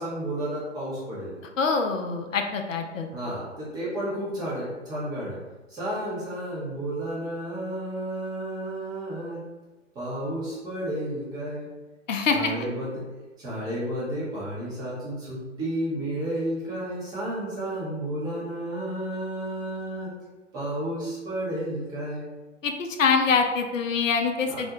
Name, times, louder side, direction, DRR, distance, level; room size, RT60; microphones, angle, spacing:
voice 1, 0.0-1.3 3.1-5.4 5.7-9.4 9.9-11.7 12.3-13.0 13.4-20.1 20.5-22.3 24.5-24.6, right 1 dB, 10° right, -8 dB, 0.5 m, -32 dB
voice 2, 1.6-3.1 12.1-12.5 22.6-24.7, left 5 dB, 85° left, 5 dB, 0.5 m, -24 dB
2.4 x 2.1 x 2.7 m, 1.2 s
figure-of-eight pair, 120°, 38 cm